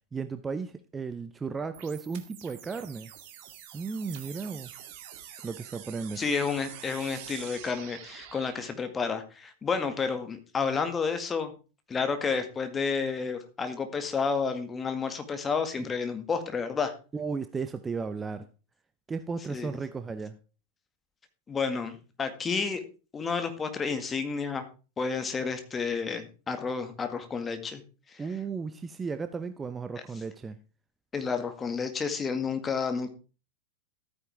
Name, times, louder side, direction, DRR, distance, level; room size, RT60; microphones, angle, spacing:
voice 1, 0.1-3.1 3.7-4.7 5.4-6.2 17.1-18.5 19.1-20.4 28.2-30.6, right 5 dB, 15° right, 10 dB, 0.8 m, -35 dB
sound 1, 1.7-8.7, right 10 dB, 45° right, 2.2 m, -46 dB
voice 2, 6.2-11.5 11.9-16.9 19.5-19.8 21.5-22.8 23.1-24.6 25.0-27.8 28.1-28.2 31.1-33.1, left 5 dB, 20° left, 8 dB, 2.0 m, -30 dB
14.5 x 9.3 x 3.6 m, 0.34 s
figure-of-eight pair, 90°, 0 cm